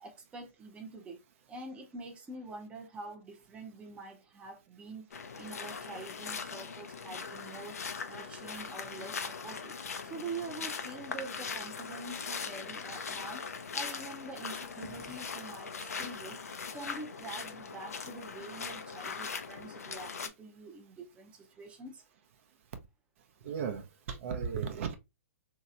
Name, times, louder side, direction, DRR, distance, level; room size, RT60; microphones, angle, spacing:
voice 1, 0.0-1.2 1.5-7.8 8.1-9.7 10.0-13.4 13.7-16.4 16.7-22.0, right 3 dB, 15° right, 0.6 m, -45 dB
sound 1, 5.1-20.3, left 5 dB, 85° left, 0.6 m, -40 dB
voice 2, 23.4-24.9, right 6 dB, 60° right, 0.7 m, -35 dB
3.1 x 2.8 x 2.5 m
hypercardioid pair, 130°, 8 cm